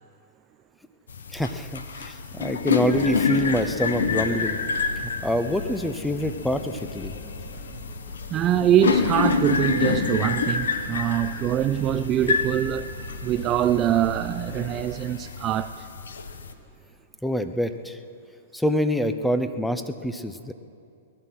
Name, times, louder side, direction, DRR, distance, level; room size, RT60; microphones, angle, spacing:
sound 1, 1.1-16.5, left 5 dB, 85° left, 1.1 m, -28 dB
voice 1, 1.3-4.6 5.2-7.1 17.2-18.0 18.5-20.5, equal, 5° left, 0.7 m, -26 dB
sound 2, 2.8-15.1, left 2 dB, 40° left, 2.5 m, -41 dB
voice 2, 8.3-12.9 13.2-15.9, right 11 dB, 30° right, 0.4 m, -23 dB
19.5 x 11.5 x 6.0 m
hypercardioid pair, 130°, 0 cm